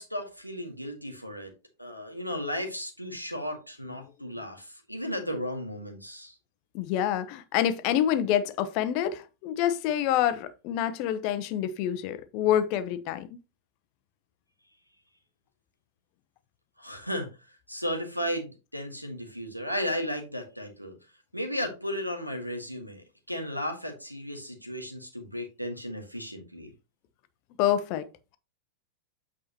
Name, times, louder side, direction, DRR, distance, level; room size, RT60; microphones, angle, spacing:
voice 1, 0.0-1.5 1.8-6.3 16.8-17.3 17.7-21.0 21.3-26.7, equal, 90° right, 1.7 m, -34 dB
voice 2, 6.7-13.3 27.6-28.1, left 11 dB, 45° left, 0.8 m, -27 dB
8.6 x 4.8 x 3.0 m
figure-of-eight pair, 90°, 0 cm